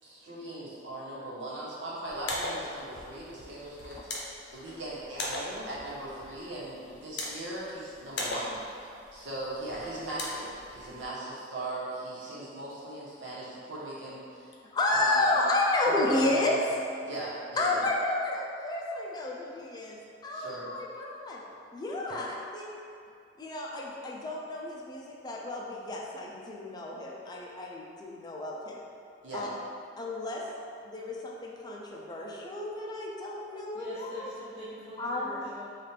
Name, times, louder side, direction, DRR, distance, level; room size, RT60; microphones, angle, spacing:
voice 1, 0.0-4.0 4.5-8.6 9.1-14.5 14.9-15.3 15.9-16.5 17.1-17.8 20.3-20.7 22.1-22.2 29.2-29.5, right 2 dB, 80° right, -7 dB, 1.0 m, -39 dB
sound 1, 2.0-11.0, left 1 dB, 65° left, 0.6 m, -40 dB
voice 2, 14.7-16.7 17.6-21.4 21.7-22.7 23.4-28.8 29.3-29.5 30.0-30.4 30.8-34.3 35.0-35.5, left 2 dB, 25° left, -2 dB, 0.4 m, -31 dB
voice 3, 33.7-35.7, equal, 55° right, -13 dB, 1.0 m, -43 dB
3.3 x 2.4 x 4.3 m, 2.4 s
head